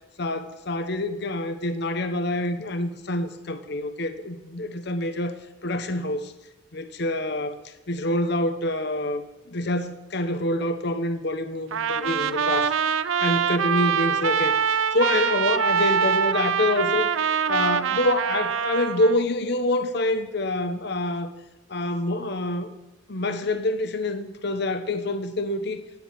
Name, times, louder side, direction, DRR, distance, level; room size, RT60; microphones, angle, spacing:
voice 1, 0.2-6.3 6.7-7.6 7.9-12.7 13.2-14.6 14.9-17.1 17.5-21.3 21.7-22.7 23.1-25.8, left 1 dB, 55° left, 10 dB, 0.9 m, -26 dB
Trumpet, 11.7-19.2, right 7 dB, 85° right, 0.5 m, -24 dB
10.5 x 9.4 x 8.6 m, 1.0 s
head